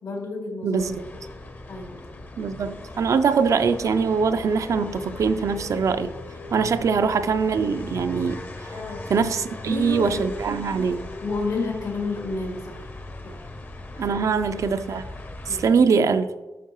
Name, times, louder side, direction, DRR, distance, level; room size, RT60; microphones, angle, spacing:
voice 1, 0.0-0.8 1.7-2.0 8.7-9.1 9.7-10.2 11.2-12.9 13.2-13.4 14.0-14.2 15.5-15.7, left 3 dB, 80° left, 2.2 m, -30 dB
voice 2, 0.6-1.2 2.4-6.2 6.5-8.8 9.1-11.1 14.0-15.0 15.5-16.3, right 5 dB, 60° right, 0.4 m, -23 dB
sound 1, 0.8-15.7, left 2 dB, 30° left, 0.7 m, -38 dB
9.3 x 5.3 x 3.0 m
wide cardioid pair, 120°, 6 cm